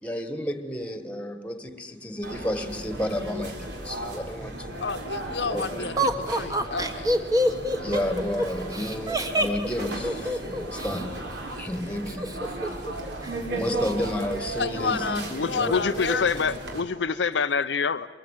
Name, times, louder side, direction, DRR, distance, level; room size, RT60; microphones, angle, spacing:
voice 1, 0.0-4.9 5.5-5.9 7.7-12.4 13.5-15.8, equal, 10° left, 1.7 m, -32 dB
sound 1, 2.2-16.8, right 1 dB, 70° right, 4.1 m, -35 dB
voice 2, 4.8-7.1 14.6-16.5, left 5 dB, 70° left, 1.1 m, -30 dB
Laughter, 6.0-11.0 12.1-12.9 13.2-13.3 13.7-14.1, equal, 20° right, 1.6 m, -26 dB
voice 3, 15.3-18.1, left 5 dB, 85° left, 0.7 m, -26 dB
24.0 x 21.5 x 9.1 m
head